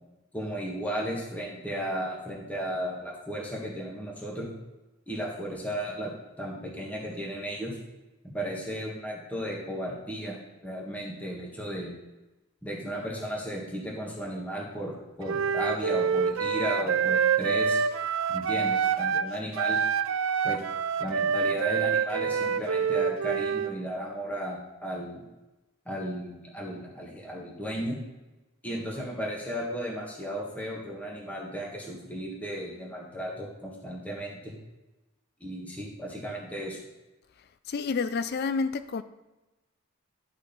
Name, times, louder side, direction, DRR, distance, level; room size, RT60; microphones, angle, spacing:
voice 1, 0.3-4.5 5.1-6.1 6.4-7.8 8.2-11.9 12.6-17.8 18.3-19.8 20.4-20.6 21.0-25.2 25.8-28.0 28.6-34.5 35.4-36.8, equal, 5° left, 1.7 m, -35 dB
Wind instrument woodwind instrument, 15.2-19.3 19.5-23.7, right 6 dB, 80° right, 0.4 m, -26 dB
voice 2, 37.7-39.0, left 4 dB, 50° left, 0.4 m, -29 dB
11.0 x 4.4 x 5.3 m
head